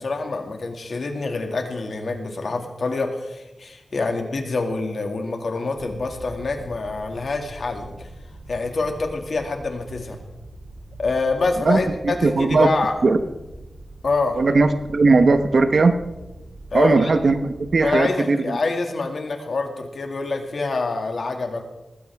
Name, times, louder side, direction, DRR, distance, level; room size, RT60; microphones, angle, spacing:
voice 1, 0.0-8.1 8.5-10.2 11.0-12.9 14.0-14.4 16.7-17.1 17.8-21.6, left 3 dB, 65° left, 4 dB, 2.2 m, -26 dB
sound 1, 5.8-17.9, right 1 dB, 85° right, 3.0 m, -42 dB
voice 2, 11.6-12.7 13.0-13.2 14.3-15.9 16.7-18.6, right 3 dB, 60° right, 9 dB, 1.0 m, -18 dB
19.5 x 16.0 x 3.6 m, 1.0 s
wide cardioid pair, 125°, 0 cm